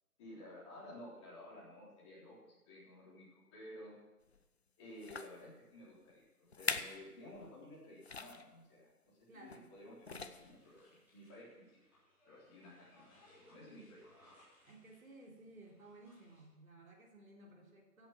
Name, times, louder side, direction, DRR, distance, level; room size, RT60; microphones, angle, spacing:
voice 1, 0.2-3.9 4.8-8.9 9.3-11.7 12.2-14.0, left 1 dB, 20° left, -7 dB, 3.8 m, -54 dB
sound 1, 4.3-4.4 5.0-5.4 6.1-6.2 6.5-7.0 7.3-7.5 8.0-8.5 9.5-9.8 10.0-10.6 11.3-11.4, left 4 dB, 45° left, 0.8 m, -42 dB
voice 2, 9.3-9.7 14.6-18.1, right 2 dB, 60° right, 0 dB, 3.6 m, -57 dB
sound 2, 10.1-16.4, left 1 dB, 5° right, 4.2 m, -68 dB
16.0 x 8.7 x 6.1 m, 1.1 s
figure-of-eight pair, 160°, 46 cm